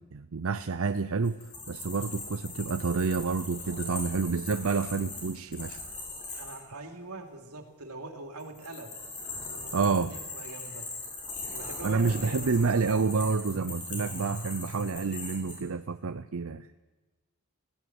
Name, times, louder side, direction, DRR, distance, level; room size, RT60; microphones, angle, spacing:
voice 1, 0.0-5.8 9.7-10.1 11.8-16.7, right 4 dB, 65° right, 11 dB, 0.6 m, -29 dB
sound 1, 1.2-6.6 8.4-15.6, left 3 dB, 35° left, 7.0 m, -40 dB
voice 2, 6.3-8.9 9.4-10.9 11.5-12.5 12.7-12.9, right 2 dB, 90° right, 4 dB, 3.1 m, -43 dB
19.5 x 16.0 x 9.6 m, 1.2 s
head